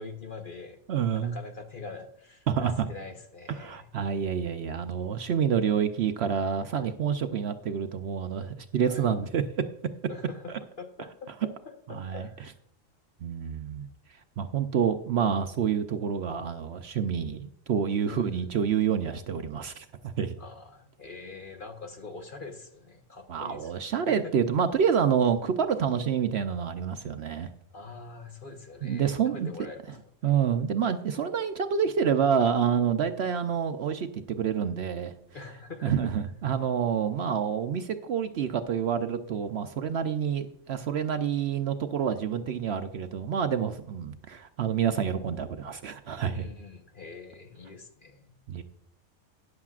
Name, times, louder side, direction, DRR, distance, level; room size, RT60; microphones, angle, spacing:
voice 1, 0.0-0.8 1.1-3.9 8.9-9.2 10.1-12.5 18.1-18.5 20.4-23.7 24.1-24.3 27.4-27.5 27.7-30.0 35.3-36.0 46.3-48.3, left 4 dB, 40° left, 5 dB, 1.1 m, -44 dB
voice 2, 0.9-1.3 2.5-2.9 3.6-9.4 10.5-10.6 11.9-12.3 13.2-13.9 14.4-20.4 23.3-27.5 28.8-29.5 30.2-35.1 35.8-46.5 48.5-48.6, right 7 dB, 60° right, 8 dB, 0.8 m, -28 dB
13.0 x 9.8 x 2.4 m, 0.72 s
omnidirectional pair, 1.4 m